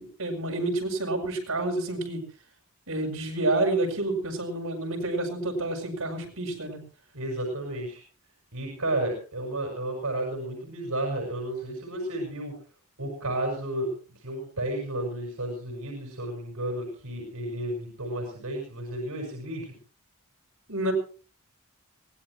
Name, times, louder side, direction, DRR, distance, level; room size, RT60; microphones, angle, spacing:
voice 1, 0.0-2.2 2.9-6.8 20.7-20.9, right 2 dB, 75° right, 0 dB, 7.6 m, -29 dB
voice 2, 7.1-8.0 8.5-12.6 13.0-13.9 14.2-19.7, right 1 dB, 90° right, 1 dB, 5.9 m, -32 dB
23.5 x 18.5 x 3.1 m, 0.38 s
head